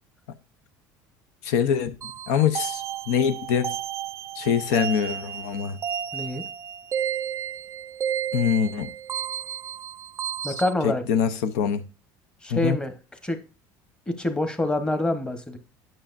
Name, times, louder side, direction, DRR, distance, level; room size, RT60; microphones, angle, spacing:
voice 1, 1.4-1.9 2.3-3.8 4.3-5.8 8.3-8.9 10.5-10.6 10.8-11.8 12.5-12.8, left 7 dB, 90° left, 0.7 m, -24 dB
sound 1, 2.0-10.7, right 9 dB, 35° right, 0.4 m, -32 dB
voice 2, 6.1-6.4 10.4-11.0 12.4-12.9 13.2-13.4 14.1-15.6, left 2 dB, 10° left, 1.0 m, -26 dB
8.8 x 6.2 x 2.5 m
cardioid pair, 120°, 8 cm